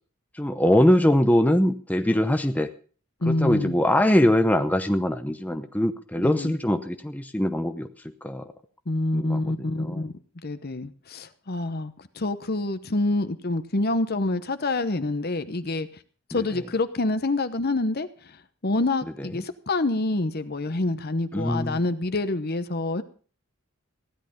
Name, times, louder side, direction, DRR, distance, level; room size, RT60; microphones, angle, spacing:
voice 1, 0.3-2.7 3.3-7.9 8.2-8.4 9.1-10.0 16.4-16.5 21.3-21.8, left 1 dB, 5° left, 7 dB, 0.7 m, -22 dB
voice 2, 3.2-3.7 6.2-6.5 8.9-10.1 10.4-15.9 16.3-18.4 18.6-23.0, left 2 dB, 45° left, 11 dB, 1.0 m, -27 dB
16.0 x 11.0 x 5.2 m, 0.41 s
head